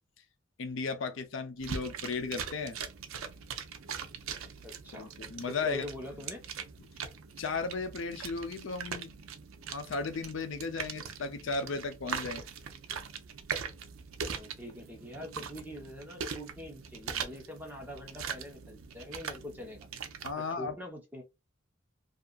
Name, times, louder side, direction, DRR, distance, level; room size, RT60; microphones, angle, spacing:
voice 1, 0.6-2.8 4.9-5.9 7.4-9.1 9.7-12.4 20.2-20.8, left 4 dB, 70° left, 0.5 m, -35 dB
sound 1, 1.6-20.3, right 6 dB, 90° right, 0.5 m, -41 dB
voice 2, 4.6-5.1 5.5-6.4 14.2-19.9 20.4-21.2, left 1 dB, 10° right, 0.8 m, -44 dB
2.7 x 2.4 x 2.2 m
head